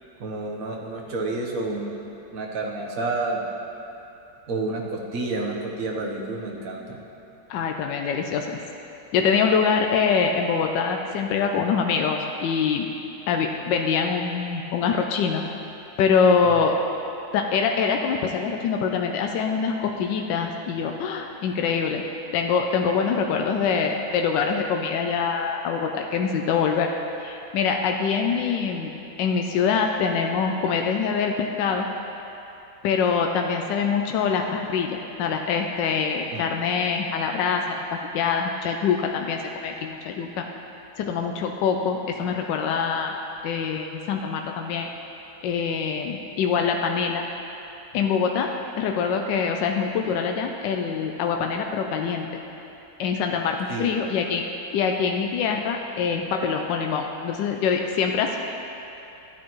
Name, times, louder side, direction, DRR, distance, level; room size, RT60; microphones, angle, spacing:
voice 1, 0.2-3.4 4.5-7.0 36.3-36.6 53.7-53.9, right 2 dB, 55° right, -1 dB, 1.4 m, -30 dB
voice 2, 7.5-8.6 9.1-12.9 13.3-15.4 16.0-16.8 17.3-22.0 22.3-26.9 27.2-28.9 29.2-31.9 32.8-37.6 37.9-40.5 41.0-43.2 43.4-44.9 45.4-47.3 47.9-52.3 53.0-54.5 54.7-58.4, left 6 dB, 85° left, 3 dB, 1.3 m, -24 dB
13.5 x 9.3 x 3.0 m, 2.9 s
omnidirectional pair, 1.9 m